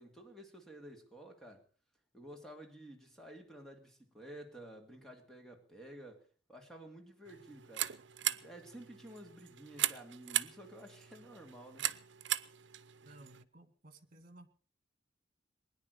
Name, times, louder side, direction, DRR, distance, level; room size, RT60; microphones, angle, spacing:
voice 1, 0.0-1.6 2.1-6.2 6.5-7.9 8.2-11.9, right 1 dB, ahead, 2.6 m, -52 dB
sound 1, 7.3-13.4, right 13 dB, 85° right, 0.8 m, -39 dB
voice 2, 13.0-14.5, right 2 dB, 50° right, 2.1 m, -57 dB
21.0 x 10.0 x 6.6 m
head